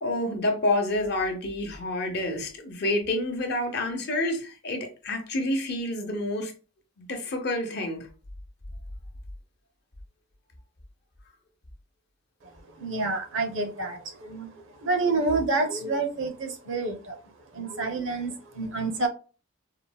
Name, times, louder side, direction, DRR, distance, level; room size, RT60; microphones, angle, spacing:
voice 1, 0.0-6.5 7.0-8.1, left 1 dB, 50° left, 0.7 m, -28 dB
voice 2, 12.4-17.2 17.5-19.1, right 3 dB, 60° right, 0.6 m, -29 dB
3.8 x 2.0 x 2.2 m
head